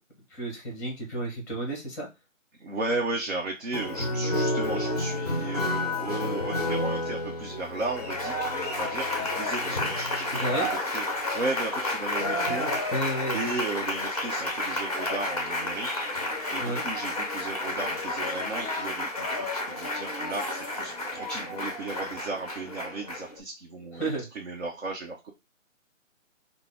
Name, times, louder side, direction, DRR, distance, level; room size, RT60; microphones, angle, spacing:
voice 1, 0.3-2.1 10.3-10.8 12.9-13.4 16.6-16.8 24.0-24.3, right 1 dB, 15° left, 1 dB, 0.9 m, -31 dB
voice 2, 2.6-13.0 13.3-16.2 16.5-25.3, right 3 dB, 55° right, 1 dB, 0.8 m, -35 dB
Applause, 3.7-23.4, left 1 dB, 30° left, 0.4 m, -30 dB
sound 1, 20.3-21.0 24.1-24.4, equal, 25° right, 0.8 m, -49 dB
3.6 x 2.0 x 3.4 m, 0.24 s
figure-of-eight pair, 160°, 40 cm